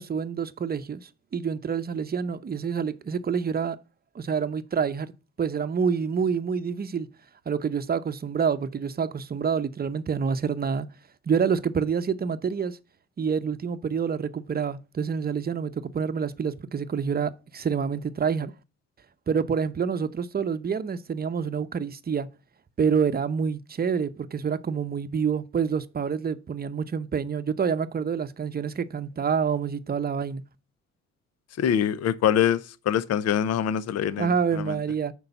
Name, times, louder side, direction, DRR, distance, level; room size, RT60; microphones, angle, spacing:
voice 1, 0.0-3.8 4.1-5.1 5.4-7.1 7.5-10.9 11.3-12.8 13.2-18.5 19.3-22.3 22.8-30.4 34.2-35.1, right 6 dB, 30° right, 0.8 m, -27 dB
voice 2, 31.6-32.6 32.9-34.3 34.7-34.8, left 9 dB, 55° left, 0.6 m, -24 dB
6.7 x 4.7 x 6.9 m
cardioid pair, 90°, 30 cm